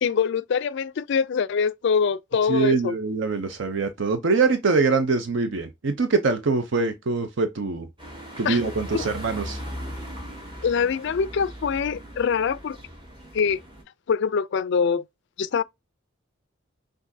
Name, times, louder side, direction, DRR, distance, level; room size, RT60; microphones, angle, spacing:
voice 1, 0.0-2.9 8.4-8.6 8.9-9.1 10.6-12.8 13.3-13.6 14.1-15.0 15.4-15.6, left 6 dB, 60° left, 0.3 m, -24 dB
voice 2, 2.5-7.9 8.4-9.6, right 4 dB, 60° right, 0.6 m, -23 dB
sound 1, 8.0-13.8, equal, 25° right, 1.5 m, -38 dB
6.0 x 2.5 x 2.6 m
head